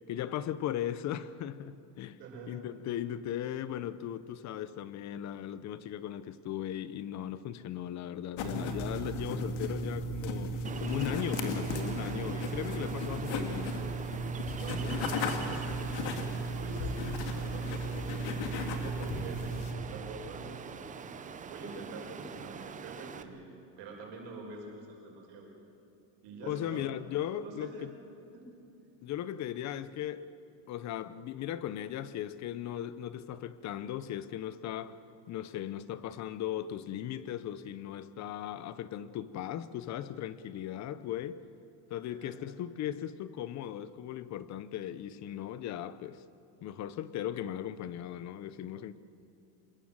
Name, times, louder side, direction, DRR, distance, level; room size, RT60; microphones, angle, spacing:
voice 1, 0.1-2.2 2.5-10.5 10.8-13.8 26.4-27.9 29.0-30.3 30.7-35.0 35.3-41.4 41.9-46.2 46.6-49.0, left 11 dB, 35° left, 0.7 m, -37 dB
voice 2, 2.2-2.5 14.6-18.2 18.8-20.8 21.5-23.5 23.8-25.5 26.2-27.9 28.3-28.4 42.1-42.4, right 2 dB, 60° right, 5.8 m, -45 dB
sound 1, 8.4-19.7, equal, 70° left, 2.8 m, -35 dB
Ocean, 10.6-23.2, right 6 dB, 15° right, 0.5 m, -43 dB
26.5 x 22.0 x 7.4 m
cardioid pair, 170°, 47 cm